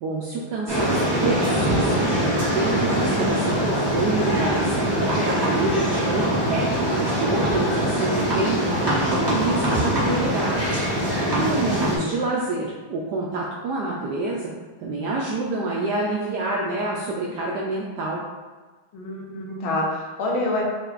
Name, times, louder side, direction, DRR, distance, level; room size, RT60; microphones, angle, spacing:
voice 1, 0.0-2.1 2.5-8.6 9.1-10.8 11.4-14.5 14.8-18.2, right 2 dB, 75° right, -3 dB, 0.9 m, -27 dB
sound 1, 0.7-12.0, equal, 15° right, 1.0 m, -23 dB
voice 2, 11.4-12.1 18.9-20.6, left 1 dB, 70° left, -2 dB, 1.6 m, -27 dB
5.5 x 2.4 x 3.9 m, 1.4 s
omnidirectional pair, 2.4 m